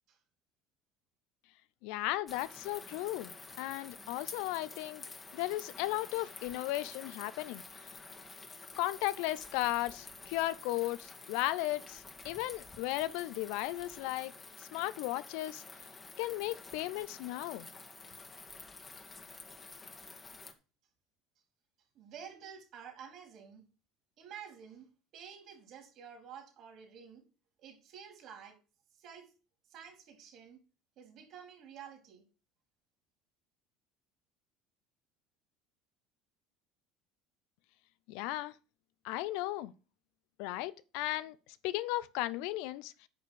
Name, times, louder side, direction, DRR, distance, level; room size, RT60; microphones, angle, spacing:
voice 1, 1.8-3.3 3.6-5.0 5.3-7.6 8.8-14.3 14.6-15.6 16.2-17.7 38.1-38.5 39.0-39.7 40.4-41.3 41.6-43.1, left 16 dB, 70° left, 0.6 m, -35 dB
sound 1, 2.3-20.5, left 3 dB, 25° left, 2.0 m, -50 dB
voice 2, 21.9-23.6 24.2-27.2 27.6-28.6 28.9-29.3 29.7-30.6 31.0-32.2, right 7 dB, 55° right, 4.1 m, -50 dB
9.5 x 5.7 x 6.2 m
hypercardioid pair, 70°, 0 cm